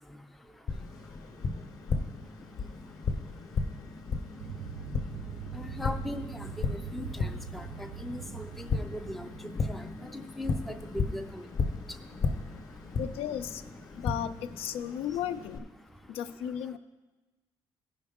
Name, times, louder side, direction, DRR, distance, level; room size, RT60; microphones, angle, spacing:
Tap, 0.7-15.6, left 4 dB, 40° left, 0.6 m, -35 dB
sound 1, 4.4-10.2, right 7 dB, 80° right, 0.5 m, -42 dB
voice 1, 5.6-7.6 8.0-9.3 9.7-9.9 10.1-10.5 10.9-11.4, left 1 dB, ahead, 6 dB, 0.4 m, -39 dB
voice 2, 13.0-13.6 14.0-15.7 16.1-16.8, left 10 dB, 80° left, 11 dB, 0.4 m, -35 dB
15.5 x 5.3 x 3.5 m, 1.2 s
cardioid pair, 175°, 10 cm